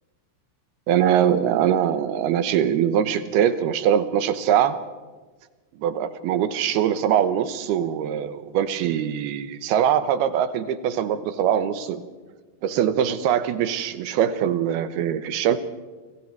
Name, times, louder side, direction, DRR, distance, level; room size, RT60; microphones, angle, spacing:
voice 1, 0.9-4.8 5.8-12.1 12.6-15.6, right 9 dB, 75° right, 11 dB, 2.9 m, -22 dB
29.5 x 25.0 x 4.7 m, 1.3 s
omnidirectional pair, 5.0 m